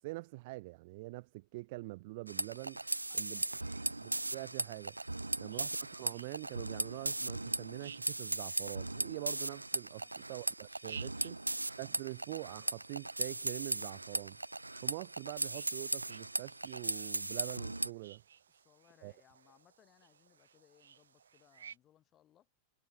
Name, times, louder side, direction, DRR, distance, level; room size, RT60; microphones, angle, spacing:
voice 1, 0.0-2.8 3.1-3.4 3.9-5.0 5.4-11.4 11.8-14.4 14.8-18.2 19.0-19.1, right 22 dB, 50° right, 1.8 m, -45 dB
sound 1, 2.3-17.9, right 2 dB, 85° right, 0.3 m, -38 dB
voice 2, 3.1-3.7 9.9-10.6 18.5-22.5, left 12 dB, 30° left, 6.9 m, -68 dB
sound 2, 3.6-21.8, right 7 dB, 70° right, 4.1 m, -58 dB
figure-of-eight pair, 90°, 0 cm